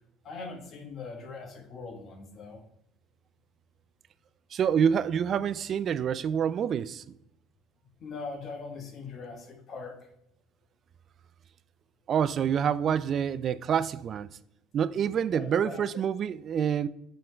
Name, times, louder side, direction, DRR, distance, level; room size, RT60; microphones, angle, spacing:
voice 1, 0.2-2.6 8.0-10.0 15.3-15.8, left 4 dB, 45° left, 1.2 m, -41 dB
voice 2, 4.5-7.0 12.1-14.3 14.7-16.9, right 8 dB, 40° right, 0.3 m, -27 dB
7.5 x 3.9 x 4.4 m
cardioid pair, 115°, 0 cm